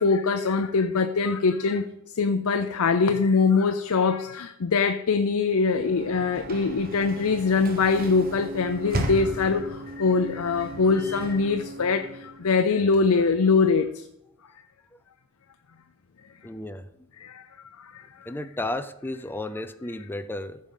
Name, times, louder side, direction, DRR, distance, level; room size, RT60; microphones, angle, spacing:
voice 1, 0.0-1.9 2.1-14.1 17.2-17.4 17.8-18.3, left 4 dB, 75° left, 0.6 m, -23 dB
Sliding door / Slam, 5.5-12.5, right 1 dB, 45° right, 1.3 m, -36 dB
voice 2, 16.4-16.9 18.3-20.6, left 1 dB, 10° left, 0.5 m, -33 dB
14.5 x 5.3 x 5.5 m
head